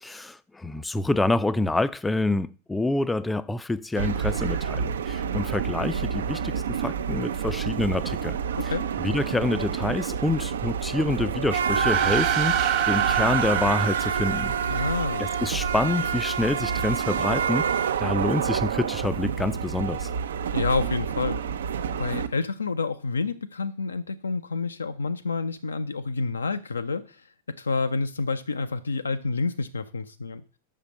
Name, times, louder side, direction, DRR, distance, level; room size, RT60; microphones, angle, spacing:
voice 1, 0.0-8.4 8.6-8.7 9.0-14.5 15.2-20.1, left 2 dB, 10° left, 0.4 m, -27 dB
sound 1, 4.0-22.3, right 7 dB, 65° right, 0.6 m, -28 dB
voice 2, 8.6-8.9 14.7-15.3 20.5-21.4 21.7-30.4, left 4 dB, 75° left, 0.5 m, -29 dB
sound 2, 11.6-15.3, right 11 dB, 35° right, 0.9 m, -28 dB
6.4 x 5.5 x 6.7 m
figure-of-eight pair, 90°, 0 cm